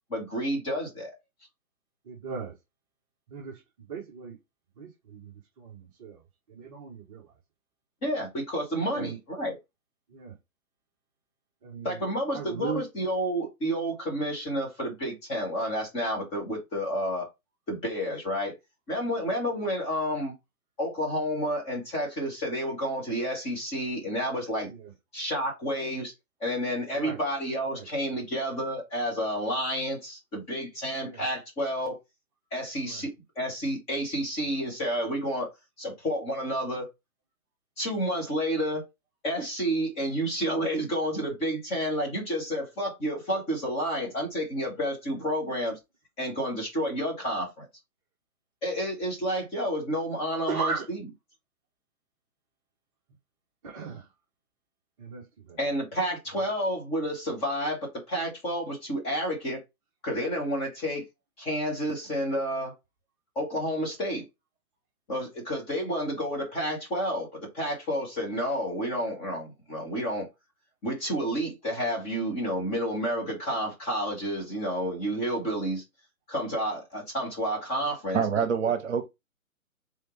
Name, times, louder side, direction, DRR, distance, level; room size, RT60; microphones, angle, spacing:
voice 1, 0.1-1.1 8.0-9.6 11.8-17.3 17.7-18.5 18.9-20.3 20.8-24.7 25.1-26.1 26.4-32.0 32.5-35.5 35.8-36.9 37.8-38.8 39.2-45.8 46.2-47.7 48.6-51.1 55.6-59.6 60.0-61.1 61.4-62.7 63.3-64.2 65.1-70.3 70.8-75.8 76.3-78.2, equal, 15° left, 1.1 m, -30 dB
voice 2, 2.1-2.6 3.3-3.6 3.9-4.4 4.8-6.2 6.5-7.3 8.8-9.5 10.1-10.3 11.6-12.0 12.3-12.8 24.7-24.9 26.9-27.2 27.7-27.9 31.0-31.2 32.8-33.1 50.5-50.8 53.6-54.1 55.0-55.6 78.4-78.7, right 5 dB, 20° right, 0.8 m, -37 dB
voice 3, 78.1-79.1, right 7 dB, 55° right, 1.0 m, -26 dB
3.6 x 3.4 x 3.0 m
figure-of-eight pair, 140°, 44 cm